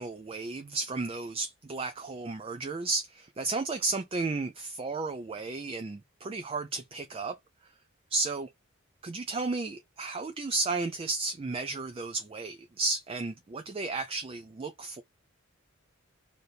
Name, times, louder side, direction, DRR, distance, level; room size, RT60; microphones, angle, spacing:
voice 1, 0.0-7.4 8.1-8.5 9.0-15.0, right 3 dB, 25° right, 0.3 m, -33 dB
3.3 x 2.7 x 4.2 m
head